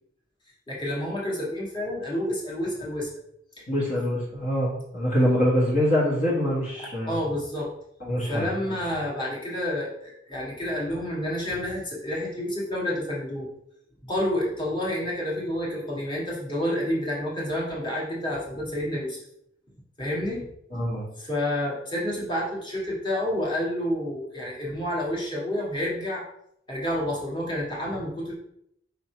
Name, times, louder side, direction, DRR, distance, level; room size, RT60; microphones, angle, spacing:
voice 1, 0.7-3.1 6.8-7.7 8.3-13.5 14.0-19.2 20.0-20.5 21.2-26.2 26.7-28.3, left 1 dB, 25° left, -5 dB, 1.9 m, -29 dB
voice 2, 3.7-7.2 8.0-8.5 20.7-21.1, equal, 45° left, -5 dB, 1.7 m, -24 dB
5.4 x 4.1 x 4.6 m, 0.72 s
head